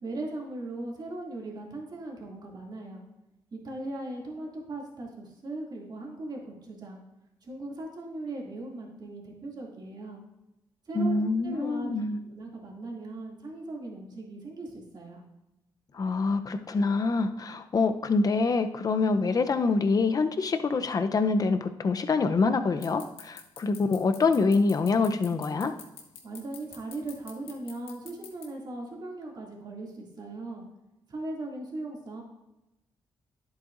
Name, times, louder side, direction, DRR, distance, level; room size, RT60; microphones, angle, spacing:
voice 1, 0.0-3.0 3.5-7.0 7.4-10.2 10.9-11.9 12.2-15.2 26.2-30.6 31.1-32.2, right 2 dB, 50° right, -2 dB, 2.6 m, -38 dB
voice 2, 10.9-12.2 15.9-25.7, left 4 dB, 40° left, 8 dB, 0.7 m, -25 dB
sound 1, 22.8-28.4, left 8 dB, 85° left, 1.2 m, -45 dB
10.5 x 8.0 x 2.6 m, 0.93 s
cardioid pair, 80°, 9 cm